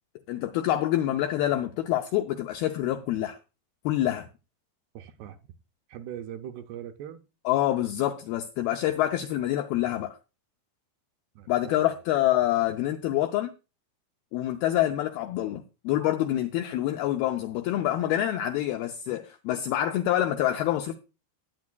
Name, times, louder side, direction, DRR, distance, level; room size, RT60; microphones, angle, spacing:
voice 1, 0.3-3.4 3.8-4.3 7.5-10.2 11.5-13.5 14.3-20.9, left 13 dB, 85° left, 2.1 m, -26 dB
voice 2, 5.0-5.4 5.9-7.2 11.4-11.7, right 10 dB, 80° right, 2.5 m, -40 dB
17.0 x 9.5 x 2.2 m
omnidirectional pair, 5.1 m